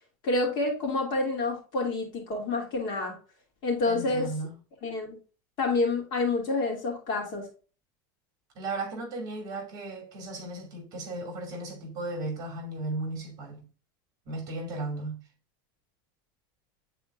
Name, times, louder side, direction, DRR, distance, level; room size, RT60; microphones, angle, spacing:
voice 1, 0.2-3.2 3.6-4.3 4.8-5.2 5.6-7.5, left 3 dB, 45° left, 2.7 m, -28 dB
voice 2, 3.8-4.6 8.6-13.7 14.3-15.2, right 2 dB, 35° right, 2.5 m, -35 dB
9.6 x 4.2 x 2.5 m
supercardioid pair, 160°, 11 cm